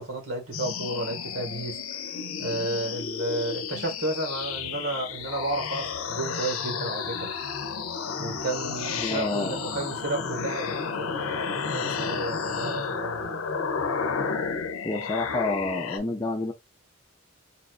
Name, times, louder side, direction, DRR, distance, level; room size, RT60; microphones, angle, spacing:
voice 1, 0.0-7.3 8.2-13.5, right 2 dB, 70° right, 1.5 m, -32 dB
sound 1, 0.5-16.0, left 5 dB, 85° left, 0.6 m, -32 dB
voice 2, 9.0-9.6 14.8-16.5, left 2 dB, 15° left, 0.5 m, -28 dB
4.1 x 2.4 x 2.4 m
head